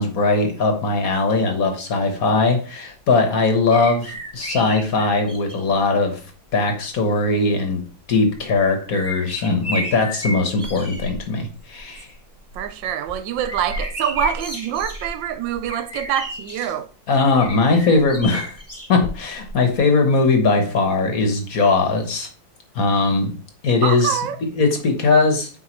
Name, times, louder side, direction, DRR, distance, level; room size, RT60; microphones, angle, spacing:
voice 1, 0.0-6.2 6.5-7.8 8.1-12.1 17.1-18.6 18.9-22.3 22.7-23.3 23.6-24.2 24.6-25.5, left 3 dB, 55° left, 1.4 m, -19 dB
sound 1, 3.7-5.7 6.6-6.7 8.3-11.2 11.5-11.9 12.3-16.7 17.4-19.5 19.8-19.9, left 1 dB, 10° left, 1.2 m, -32 dB
voice 2, 12.5-16.9 23.8-24.4, right 10 dB, 80° right, 1.3 m, -25 dB
8.1 x 4.7 x 3.0 m
omnidirectional pair, 2.1 m